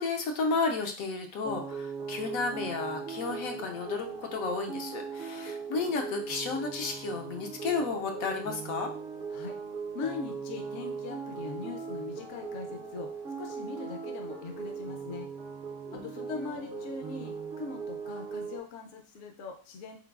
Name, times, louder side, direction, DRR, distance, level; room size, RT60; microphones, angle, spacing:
voice 1, 0.0-8.9 15.9-16.5, left 4 dB, 85° left, 3 dB, 1.1 m, -33 dB
sound 1, 1.4-18.6, right 5 dB, 55° right, 0.7 m, -39 dB
voice 2, 9.9-13.1 13.4-15.3 15.9-20.0, left 4 dB, 65° left, 4 dB, 0.9 m, -40 dB
3.9 x 3.7 x 2.3 m, 0.40 s
omnidirectional pair, 1.4 m